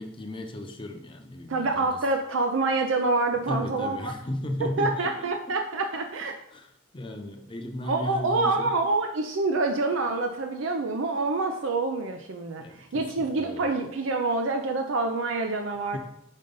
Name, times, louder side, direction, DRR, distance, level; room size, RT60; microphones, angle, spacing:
voice 1, 0.0-2.0 3.5-5.3 6.5-8.7 12.6-13.7 15.9-16.0, left 1 dB, 25° left, 4 dB, 0.7 m, -35 dB
voice 2, 1.5-4.1 4.6-6.3 7.8-16.0, right 3 dB, 75° right, 4 dB, 0.5 m, -27 dB
5.4 x 3.8 x 5.3 m, 0.78 s
head